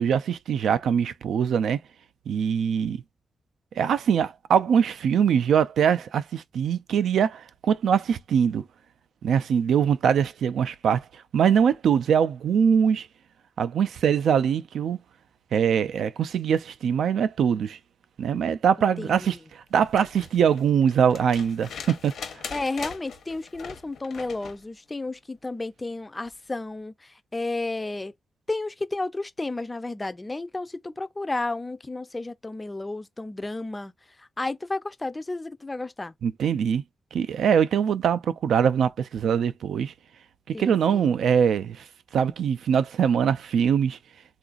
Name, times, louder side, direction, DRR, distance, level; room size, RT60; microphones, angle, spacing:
voice 1, 0.0-1.8 2.3-3.0 3.8-8.6 9.2-13.1 13.6-15.0 15.5-17.8 18.2-22.1 36.2-36.8 37.1-39.9 40.5-41.8 42.1-44.0, right 7 dB, 90° right, 0.3 m, -23 dB
voice 2, 18.8-19.2 22.5-28.1 28.5-33.9 34.2-36.1 40.5-41.1, left 2 dB, 20° left, 0.3 m, -32 dB
sound 1, 19.8-24.6 26.3-26.4, left 6 dB, 80° left, 0.8 m, -41 dB
3.8 x 2.4 x 2.4 m
wide cardioid pair, 140°, 0 cm